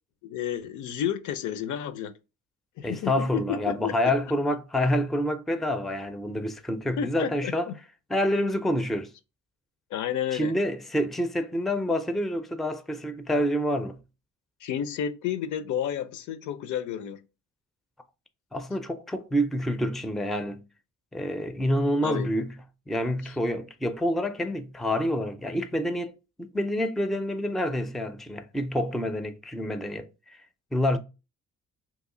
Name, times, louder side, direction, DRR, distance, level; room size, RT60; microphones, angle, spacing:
voice 1, 0.2-2.1 2.8-3.9 7.0-7.7 9.9-10.5 14.6-17.2 22.0-22.3 23.2-23.3, left 9 dB, 75° left, 0.6 m, -31 dB
voice 2, 2.8-7.7 8.1-9.1 10.3-14.0 18.5-20.6 21.1-22.6 22.9-26.1 26.4-30.1 30.7-31.0, equal, ahead, 0.4 m, -27 dB
2.9 x 2.4 x 3.7 m
cardioid pair, 90°, 30 cm